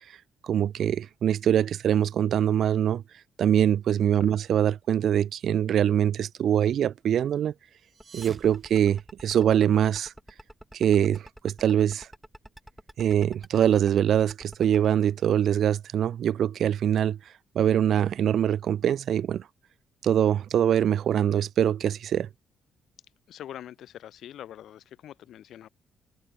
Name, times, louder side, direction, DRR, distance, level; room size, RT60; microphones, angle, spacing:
voice 1, 0.4-3.0 3.4-7.5 8.1-10.1 10.7-12.1 13.0-17.2 17.5-19.4 20.0-22.3, right 9 dB, 65° right, 1.0 m, -23 dB
sound 1, 7.8-9.7, right 5 dB, 40° right, 4.8 m, -49 dB
sound 2, 8.0-14.9, right 1 dB, 5° right, 5.3 m, -47 dB
voice 2, 23.3-25.7, left 11 dB, 75° left, 2.8 m, -44 dB
cardioid pair, 90°, 0 cm